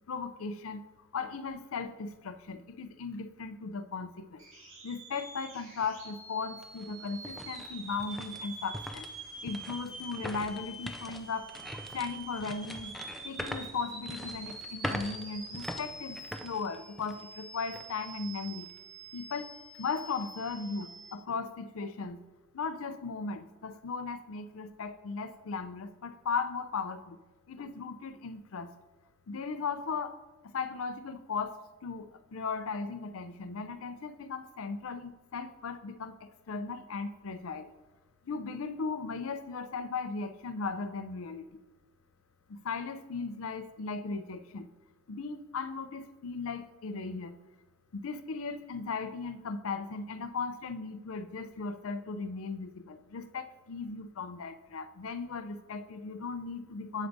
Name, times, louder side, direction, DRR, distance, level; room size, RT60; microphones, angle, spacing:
voice 1, 0.1-0.8 1.1-4.4 4.8-9.1 9.4-11.5 11.9-12.9 13.2-18.7 19.1-19.5 19.8-22.2 22.5-27.2 27.5-28.7 29.3-30.2 30.4-37.7 38.2-41.5 42.5-44.7 45.1-47.4 47.9-57.1, left 4 dB, 90° left, 10 dB, 0.5 m, -37 dB
sound 1, 4.4-21.1, right 2 dB, 65° right, 2.1 m, -46 dB
sound 2, 5.8-5.9 6.4-17.3 17.7-17.9 18.5-18.8, equal, ahead, 0.3 m, -43 dB
8.2 x 7.8 x 2.6 m, 1.1 s
head